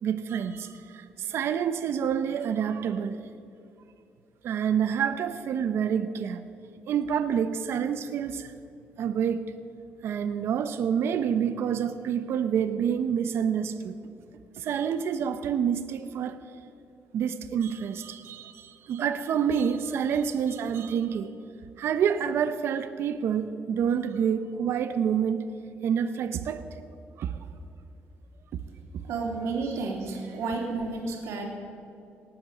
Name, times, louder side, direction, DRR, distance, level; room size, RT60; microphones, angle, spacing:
voice 1, 0.0-3.2 4.4-6.4 6.9-8.6 9.0-9.5 10.0-13.9 14.5-16.4 17.1-21.3 21.8-25.5 25.8-26.7 27.2-27.4, right 8 dB, 65° right, 10 dB, 0.7 m, -28 dB
voice 2, 29.0-31.4, right 3 dB, 80° right, 1 dB, 2.8 m, -31 dB
18.0 x 8.6 x 7.8 m, 2.6 s
cardioid pair, 130°, 5 cm